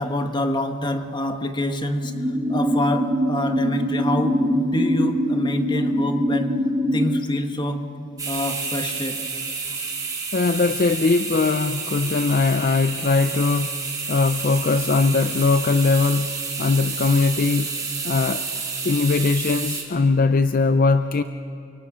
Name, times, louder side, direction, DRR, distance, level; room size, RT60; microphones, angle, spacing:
voice 1, 0.0-2.1 2.5-6.6 6.9-7.8 8.3-9.2, left 1 dB, 20° left, 6 dB, 1.3 m, -26 dB
sound 1, 2.0-7.0, equal, ahead, 2.4 m, -23 dB
sound 2, 8.2-19.8, right 5 dB, 20° right, 3.5 m, -30 dB
voice 2, 10.3-13.8 14.1-16.3 16.6-17.7 18.0-18.4 18.8-21.2, left 3 dB, 40° left, 10 dB, 0.5 m, -20 dB
29.0 x 24.0 x 6.2 m, 2.8 s
head